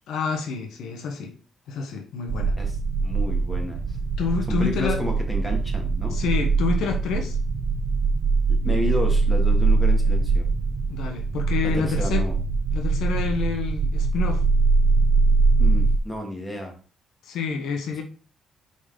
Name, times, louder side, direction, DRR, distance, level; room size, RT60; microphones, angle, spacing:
voice 1, 0.1-1.4 1.7-2.5 4.2-5.0 6.1-7.4 10.9-12.2 12.7-14.4 17.2-18.0, left 5 dB, 80° left, 1.1 m, -28 dB
sound 1, 2.3-16.0, right 4 dB, 50° right, 0.7 m, -22 dB
voice 2, 3.0-4.0 4.5-6.2 8.5-10.5 11.6-12.3 15.6-16.7, left 1 dB, 10° left, 2.3 m, -31 dB
5.2 x 4.1 x 5.1 m
cardioid pair, 90°, 0 cm